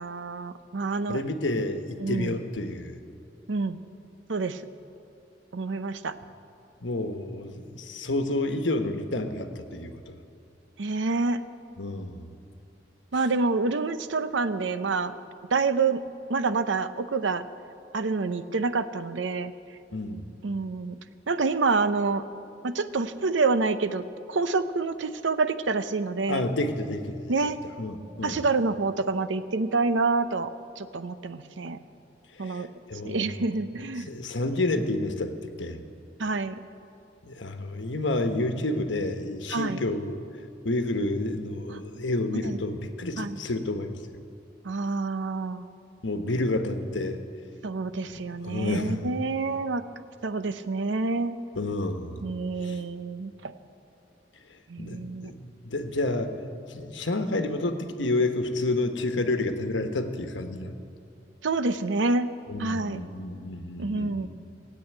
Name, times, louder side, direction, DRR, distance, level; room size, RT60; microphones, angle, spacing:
voice 1, 0.0-1.2 2.0-2.4 3.5-3.8 4.3-4.6 5.5-6.2 10.8-11.4 13.1-15.1 15.5-16.0 16.3-17.5 17.9-19.5 20.4-21.0 21.3-22.2 22.6-24.0 24.3-26.5 27.3-27.6 28.2-31.8 32.4-32.7 33.0-34.1 36.2-36.6 39.5-39.8 41.7-41.8 42.5-42.6 43.2-43.4 44.6-45.7 47.6-49.8 50.2-51.4 52.2-53.5 54.7-55.3 61.4-62.3 62.6-63.0 63.8-64.3, right 3 dB, 85° right, 12 dB, 0.7 m, -27 dB
voice 2, 1.1-2.9 6.8-10.1 11.8-12.3 19.9-20.2 26.3-27.3 27.8-28.4 32.4-33.3 34.1-35.3 35.6-35.8 37.2-40.2 40.6-44.2 46.0-47.2 48.1-49.1 51.5-52.2 52.6-52.8 54.8-56.3 56.7-60.8 62.5-64.3, left 2 dB, 85° left, 7 dB, 1.2 m, -30 dB
17.5 x 8.5 x 9.2 m, 2.5 s
head